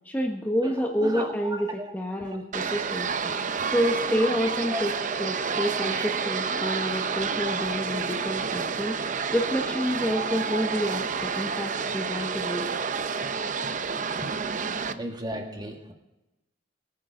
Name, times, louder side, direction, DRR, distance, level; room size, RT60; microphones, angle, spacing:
voice 1, 0.0-3.1 3.7-4.9 5.2-12.6, equal, 10° left, 1 dB, 1.2 m, -28 dB
voice 2, 0.7-1.9 2.2-2.4 3.6-3.7 4.1-4.2 4.7-4.8 12.1-12.3 14.9-15.9, right 1 dB, 25° right, 2 dB, 2.1 m, -35 dB
sound 1, 2.5-14.9, right 5 dB, 45° right, 0.7 m, -29 dB
23.5 x 9.5 x 3.9 m, 1.0 s
head